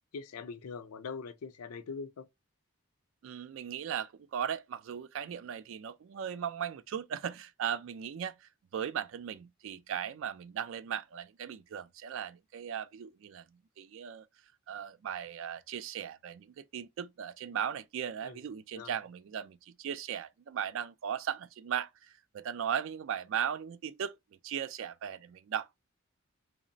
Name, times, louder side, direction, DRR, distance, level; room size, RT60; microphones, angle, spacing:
voice 1, 0.1-2.3 18.2-18.4 18.7-18.9, left 5 dB, 85° left, 0.4 m, -42 dB
voice 2, 3.2-13.4 13.8-14.2 14.7-24.2 24.4-25.8, right 8 dB, 60° right, 0.3 m, -37 dB
2.9 x 2.0 x 2.5 m
head